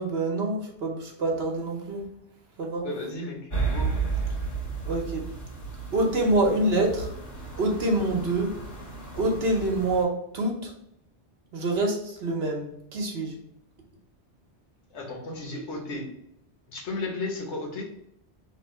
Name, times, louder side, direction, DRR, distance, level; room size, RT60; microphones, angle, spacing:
voice 1, 0.0-2.0 2.6-2.8 4.9-5.2 5.9-7.1 7.6-8.5 9.2-10.7 11.5-13.3, right 2 dB, 65° right, 1 dB, 1.2 m, -26 dB
voice 2, 2.8-3.9 14.9-16.1 16.7-18.0, left 2 dB, 90° left, -1 dB, 1.4 m, -34 dB
sound 1, 3.5-10.0, right 4 dB, 50° left, 1.5 m, -33 dB
3.7 x 3.0 x 4.5 m, 0.75 s
omnidirectional pair, 1.1 m